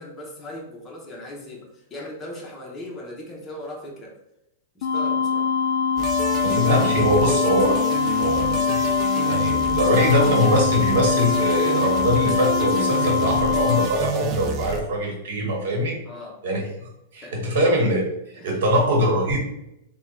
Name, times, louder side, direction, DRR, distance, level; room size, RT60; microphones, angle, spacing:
voice 1, 0.0-4.2 4.7-5.5 16.1-16.4 17.2-17.5 18.3-18.6, left 1 dB, 10° left, -2 dB, 0.7 m, -38 dB
sound 1, 4.8-13.9, left 6 dB, 55° left, 0.3 m, -23 dB
sound 2, 6.0-14.8, right 2 dB, 20° right, 0.3 m, -29 dB
voice 2, 6.4-7.8 8.2-8.8 9.2-15.9 16.4-18.0 18.4-19.4, equal, 60° right, 0 dB, 1.3 m, -22 dB
3.5 x 2.2 x 4.2 m, 0.84 s
supercardioid pair, 170°, 0 cm